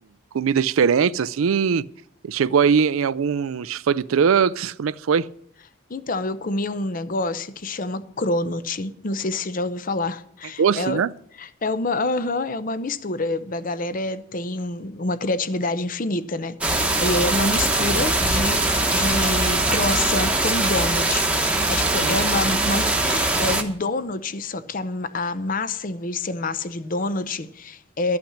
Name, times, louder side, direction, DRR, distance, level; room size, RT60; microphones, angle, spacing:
voice 1, 0.3-1.8 2.2-5.3 10.6-11.1 22.0-22.2, right 6 dB, 85° right, 0.4 m, -21 dB
voice 2, 5.9-11.0 11.4-28.2, left 2 dB, 40° left, 0.7 m, -27 dB
sound 1, 16.6-23.6, right 2 dB, 5° right, 1.1 m, -21 dB
13.0 x 5.9 x 8.6 m
head